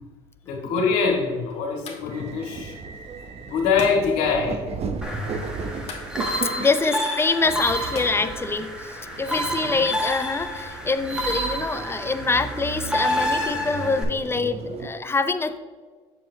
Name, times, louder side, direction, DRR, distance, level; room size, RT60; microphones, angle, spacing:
voice 1, 0.4-2.8 3.3-4.6 9.2-9.8, left 5 dB, 75° left, 0 dB, 1.8 m, -24 dB
sound 1, 0.6-9.1, left 3 dB, 40° left, 1.5 m, -44 dB
sound 2, 2.1-14.9, right 5 dB, 40° right, 0.8 m, -36 dB
sound 3, 5.0-14.0, equal, 5° right, 1.6 m, -29 dB
voice 2, 6.6-15.6, left 3 dB, 15° left, 11 dB, 0.5 m, -25 dB
7.5 x 6.8 x 2.8 m, 1.5 s
supercardioid pair, 80°, 15 cm